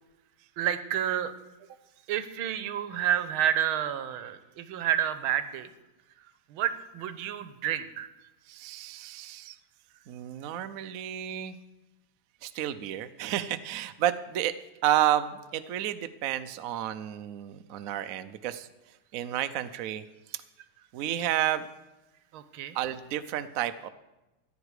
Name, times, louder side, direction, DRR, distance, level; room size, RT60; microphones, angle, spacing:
voice 1, 0.6-1.3 2.1-5.7 6.5-8.1 22.3-22.8, right 10 dB, 90° right, 12 dB, 1.6 m, -29 dB
voice 2, 8.5-9.6 10.1-11.6 12.4-14.5 14.8-18.7 19.1-20.0 20.3-20.4 20.9-21.7 22.7-23.9, right 12 dB, 70° right, 11 dB, 0.8 m, -31 dB
15.0 x 9.8 x 4.8 m, 1.0 s
omnidirectional pair, 2.2 m